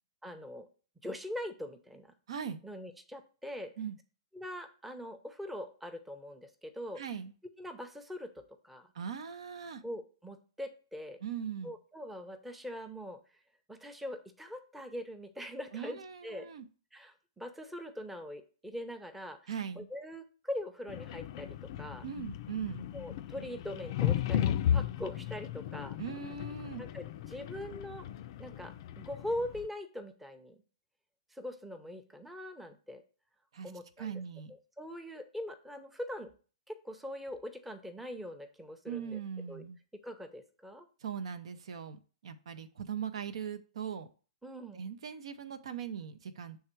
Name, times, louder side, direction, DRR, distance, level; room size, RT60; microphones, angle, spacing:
voice 1, 0.2-0.7 1.0-2.1 2.6-3.7 4.3-7.0 7.6-8.9 9.8-11.2 11.6-13.2 13.7-16.5 16.9-19.4 19.8-22.0 22.9-26.0 26.8-28.1 28.4-30.6 31.3-33.0 33.6-34.1 34.8-36.3 36.7-39.2 39.5-39.6 40.0-40.9 44.4-44.8, left 1 dB, 5° right, 6 dB, 0.7 m, -42 dB
voice 2, 2.3-2.6 3.8-4.0 7.0-7.3 8.9-9.8 11.2-11.7 15.7-16.7 19.5-19.9 22.0-22.8 26.0-26.8 33.5-33.7 34.0-34.5 38.9-39.8 41.0-44.1 44.7-46.6, right 7 dB, 70° right, 10 dB, 0.6 m, -40 dB
sound 1, 20.9-29.7, left 10 dB, 50° left, 0.4 m, -35 dB
6.4 x 3.5 x 4.5 m, 0.38 s
hypercardioid pair, 125°, 3 cm